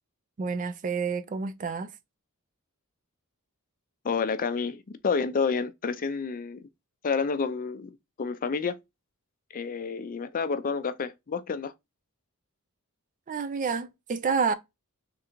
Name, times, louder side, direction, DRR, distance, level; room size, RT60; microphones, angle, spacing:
voice 1, 0.4-1.9 13.3-14.5, right 5 dB, 35° right, 0.4 m, -29 dB
voice 2, 4.0-6.7 7.0-8.8 9.5-11.7, left 5 dB, 40° left, 0.4 m, -29 dB
3.7 x 3.3 x 2.9 m
head